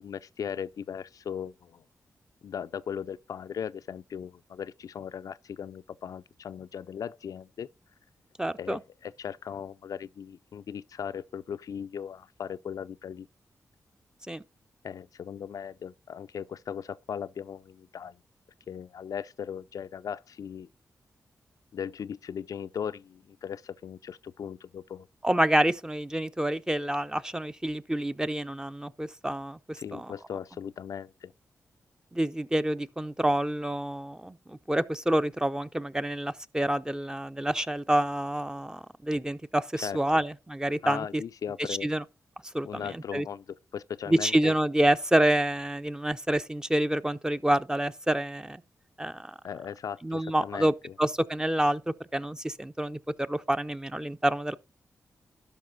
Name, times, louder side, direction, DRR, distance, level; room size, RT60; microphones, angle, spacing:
voice 1, 0.0-1.8 2.4-7.7 8.6-13.3 14.8-18.2 18.7-20.7 21.7-25.1 29.8-31.3 39.8-40.2 40.8-41.9 42.6-44.6 49.4-50.9, left 8 dB, 70° left, 0.4 m, -38 dB
voice 2, 8.4-8.8 14.3-14.4 25.2-30.1 32.1-41.2 41.7-42.0 42.5-43.3 44.1-48.6 49.0-49.3 50.0-53.0 53.3-54.6, right 1 dB, 10° right, 0.6 m, -28 dB
12.5 x 5.3 x 3.9 m
cardioid pair, 50°, 6 cm